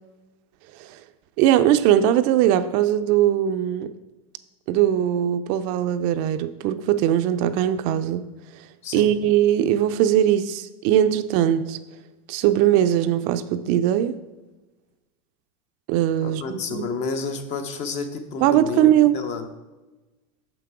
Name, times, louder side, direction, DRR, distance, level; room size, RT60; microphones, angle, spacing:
voice 1, 1.4-3.9 4.7-8.3 8.9-11.8 12.3-14.1 15.9-16.9 18.4-19.2, right 11 dB, 55° right, 10 dB, 0.5 m, -20 dB
voice 2, 8.8-9.1 16.2-19.4, left 4 dB, 40° left, 7 dB, 0.9 m, -31 dB
6.7 x 6.0 x 4.8 m, 1.1 s
supercardioid pair, 130°, 17 cm